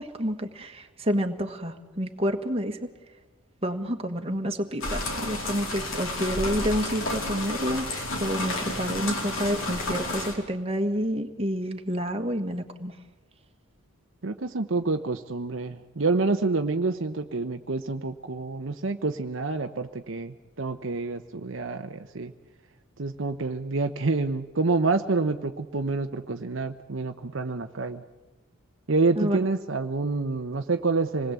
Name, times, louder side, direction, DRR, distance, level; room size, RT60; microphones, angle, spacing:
voice 1, 0.0-2.9 3.6-13.0 29.1-29.4, equal, 25° right, 4 dB, 1.6 m, -29 dB
sound 1, 4.8-10.3, left 2 dB, 70° left, 4.3 m, -31 dB
voice 2, 14.2-22.3 23.0-28.0 28.9-31.3, right 3 dB, 65° right, 7 dB, 0.8 m, -28 dB
27.0 x 20.0 x 8.2 m, 1.1 s
head